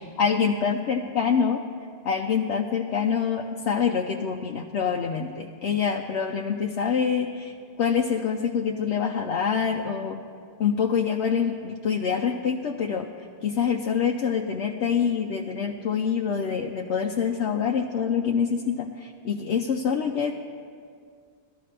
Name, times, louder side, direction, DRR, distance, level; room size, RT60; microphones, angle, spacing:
voice 1, 0.2-1.6 2.0-10.2 10.6-13.1 13.4-20.3, left 6 dB, 85° left, 2 dB, 0.9 m, -26 dB
18.5 x 13.0 x 3.3 m, 2.2 s
omnidirectional pair, 1.1 m